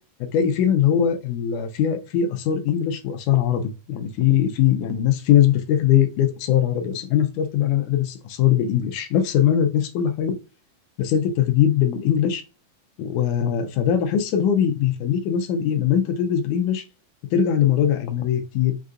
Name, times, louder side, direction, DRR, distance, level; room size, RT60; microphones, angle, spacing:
voice 1, 0.2-10.4 11.0-12.4 13.0-16.8 17.3-18.8, left 9 dB, 75° left, 2.0 m, -21 dB
6.5 x 2.5 x 2.4 m
omnidirectional pair, 3.8 m